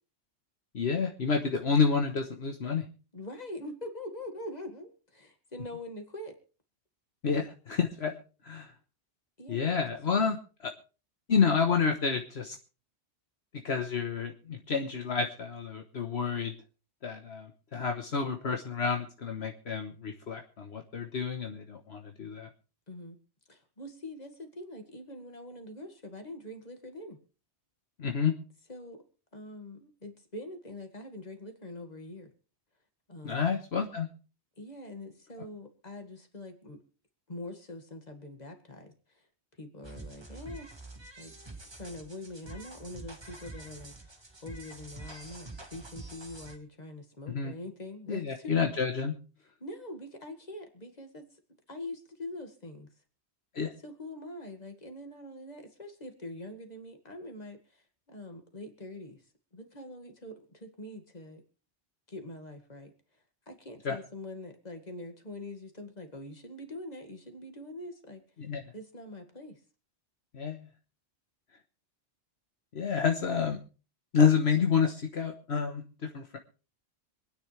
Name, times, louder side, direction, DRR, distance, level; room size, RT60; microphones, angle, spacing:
voice 1, 0.7-2.9 7.2-8.2 8.4-8.7 9.5-10.4 10.6-10.7 11.3-12.6 13.6-16.5 17.0-22.5 28.0-28.3 33.2-34.1 47.3-47.5 48.1-49.1 53.5-53.7 63.8-64.0 68.4-68.6 70.3-70.7 72.7-73.6 74.1-76.4, left 6 dB, 65° left, 4 dB, 1.5 m, -29 dB
voice 2, 3.1-6.4 9.4-9.8 10.2-10.4 22.9-23.2 23.5-27.2 28.7-29.0 29.3-32.3 33.1-33.5 34.6-36.8 37.3-39.3 39.6-40.7 41.2-41.3 41.7-48.5 49.6-51.4 51.7-52.9 53.8-59.2 59.5-61.4 62.1-62.9 63.5-68.2 68.7-69.6, left 1 dB, 35° left, 5 dB, 2.2 m, -44 dB
sound 1, 39.8-46.6, right 2 dB, 25° right, 1.7 m, -47 dB
26.0 x 9.9 x 3.3 m, 0.36 s
omnidirectional pair, 1.2 m